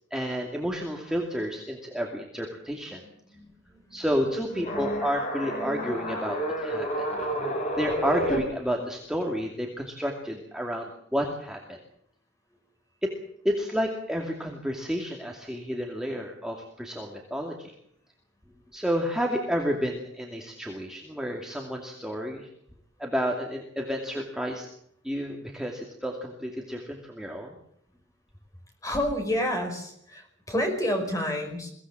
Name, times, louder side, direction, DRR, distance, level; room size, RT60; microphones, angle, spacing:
voice 1, 0.1-3.0 3.9-7.1 7.8-11.8 13.0-13.1 13.4-17.7 18.7-22.5 23.0-24.7 25.0-27.6, equal, 5° right, 0 dB, 2.4 m, -30 dB
voice 2, 3.0-5.1 5.4-6.1 6.8-7.2 12.5-12.6 28.8-31.7, left 1 dB, 15° left, 4 dB, 5.4 m, -31 dB
sound 1, 4.5-8.4, equal, 35° left, 5.7 m, -30 dB
23.0 x 17.5 x 7.6 m, 0.72 s
head